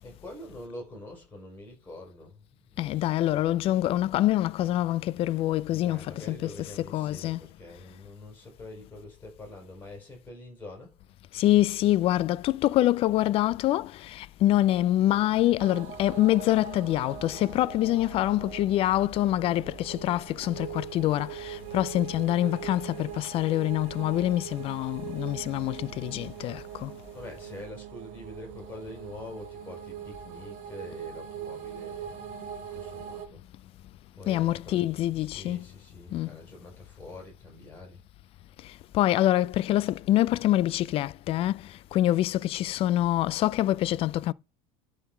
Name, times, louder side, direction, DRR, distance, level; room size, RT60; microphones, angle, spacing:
voice 1, 0.0-3.2 5.6-11.0 27.1-32.3 32.7-33.4 34.1-34.8 35.1-38.0, left 1 dB, 10° left, 4.0 m, -45 dB
voice 2, 2.8-7.5 11.3-26.9 34.3-35.7 36.1-36.4 38.6-44.3, left 14 dB, 35° left, 0.3 m, -25 dB
sound 1, 15.6-33.3, right 10 dB, 50° right, 1.2 m, -41 dB
11.0 x 4.0 x 4.4 m
supercardioid pair, 135°, 16 cm